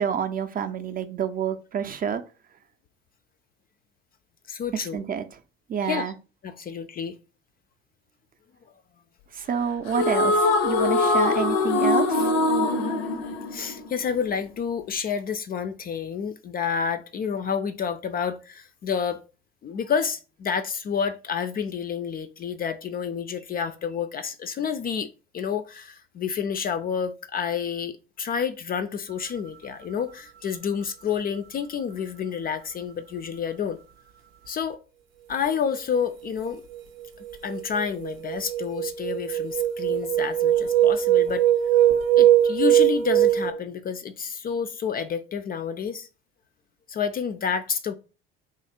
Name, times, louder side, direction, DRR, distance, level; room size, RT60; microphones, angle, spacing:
voice 1, 0.0-2.2 4.7-5.2 5.7-6.1 9.3-12.3, right 7 dB, 30° right, 0.5 m, -28 dB
voice 2, 4.5-5.0 5.9-6.0 6.4-7.2 13.5-19.2 19.6-25.1 25.3-33.8 34.5-34.8 35.3-36.6 37.4-41.4 42.1-46.1 46.9-47.9, left 7 dB, 30° left, 0.4 m, -29 dB
sound 1, 9.9-14.3, left 2 dB, 75° left, 0.6 m, -23 dB
sound 2, 36.4-36.8 37.2-43.5, right 11 dB, 75° right, 0.6 m, -21 dB
2.9 x 2.4 x 4.3 m
figure-of-eight pair, 55°, 30 cm